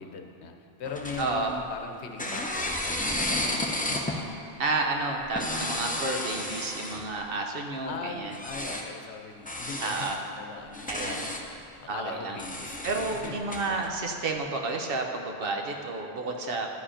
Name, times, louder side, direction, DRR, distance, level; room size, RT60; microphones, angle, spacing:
voice 1, 0.0-4.3 7.8-12.9 13.2-13.5, left 4 dB, 90° left, 4 dB, 1.0 m, -41 dB
sound 1, 0.8-1.8 2.2-4.2 5.2-7.2 8.3-8.9 9.5-10.2 10.7-11.5 12.4-13.9, left 1 dB, 10° left, 0.4 m, -32 dB
voice 2, 1.2-1.5 4.6-8.3 9.8-10.1 10.9-11.2 11.9-12.4 12.8-16.7, right 3 dB, 60° right, 2 dB, 0.9 m, -31 dB
10.5 x 5.0 x 5.0 m, 2.5 s
omnidirectional pair, 1.1 m